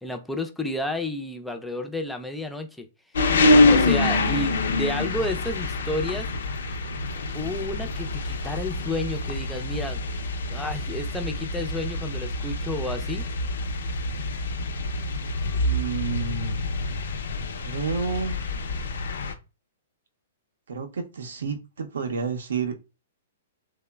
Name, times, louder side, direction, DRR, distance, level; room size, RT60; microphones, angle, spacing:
voice 1, 0.0-2.9 3.6-6.3 7.3-10.0 10.5-13.2, left 1 dB, 5° left, 0.4 m, -31 dB
sound 1, 3.1-19.3, left 2 dB, 80° left, 0.4 m, -26 dB
voice 2, 15.6-16.7 17.6-18.4 20.7-22.8, right 5 dB, 85° right, 0.6 m, -30 dB
3.0 x 2.0 x 2.2 m
hypercardioid pair, 140°, 0 cm